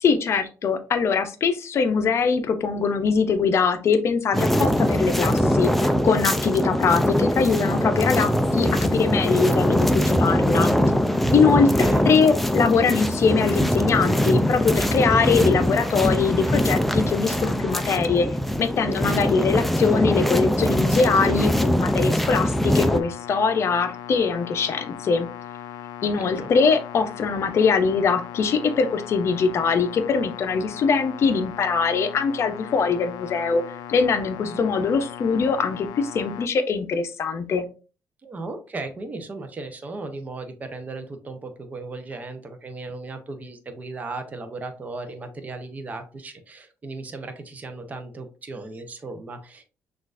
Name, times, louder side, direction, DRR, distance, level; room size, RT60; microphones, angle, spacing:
voice 1, 0.0-5.7 6.0-10.7 11.3-18.3 18.6-25.3 26.0-33.6 33.9-37.6, left 5 dB, 45° left, 8 dB, 0.6 m, -22 dB
sound 1, 4.3-23.0, equal, 5° left, 0.3 m, -22 dB
voice 2, 6.5-6.9 11.8-12.1 19.0-19.3 26.0-26.5 34.4-34.7 38.2-49.6, right 3 dB, 25° right, 7 dB, 0.7 m, -36 dB
sound 2, 22.8-36.5, left 10 dB, 90° left, 0.3 m, -38 dB
6.1 x 2.5 x 2.5 m, 0.34 s
cardioid pair, 140°, 6 cm